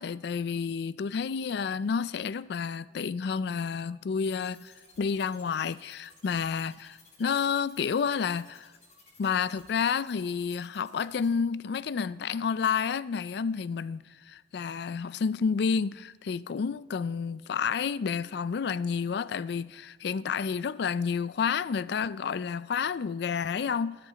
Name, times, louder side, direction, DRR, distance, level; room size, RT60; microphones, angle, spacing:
voice 1, 0.0-8.7 9.2-24.0, left 6 dB, 60° left, 0.4 m, -30 dB
sound 1, 4.4-11.3, left 3 dB, 40° left, 3.5 m, -57 dB
13.0 x 11.5 x 5.8 m
head